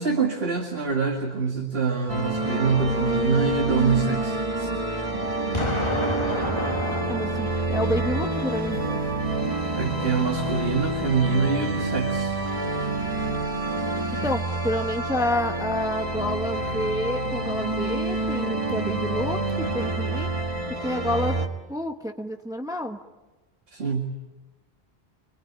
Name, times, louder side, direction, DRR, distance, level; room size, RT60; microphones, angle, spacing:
voice 1, 0.0-4.8 9.7-12.3 23.7-24.1, right 5 dB, 70° right, 2 dB, 2.4 m, -25 dB
sound 1, 2.1-21.5, right 2 dB, 30° right, 1.8 m, -27 dB
Explosion, 5.5-8.5, left 1 dB, 25° left, 2.0 m, -30 dB
voice 2, 7.1-9.0 14.1-20.3 20.8-21.4 21.7-23.0, equal, 5° right, 3 dB, 1.1 m, -29 dB
sound 2, 8.7-14.6, left 4 dB, 75° left, 1.8 m, -39 dB
26.5 x 23.5 x 8.8 m, 1.2 s
omnidirectional pair, 1.1 m